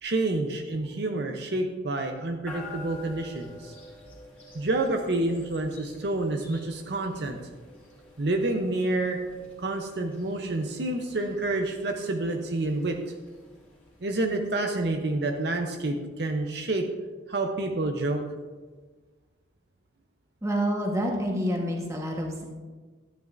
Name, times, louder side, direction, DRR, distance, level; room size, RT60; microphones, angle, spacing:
voice 1, 0.0-3.7 4.5-7.4 8.2-9.2 9.6-13.0 14.0-16.8 17.3-18.2, right 2 dB, 60° right, 3 dB, 0.7 m, -28 dB
sound 1, 2.5-15.5, left 1 dB, 10° left, 2.4 m, -49 dB
voice 2, 20.4-22.4, equal, 15° right, 0 dB, 1.2 m, -28 dB
12.5 x 9.6 x 2.6 m, 1.4 s
head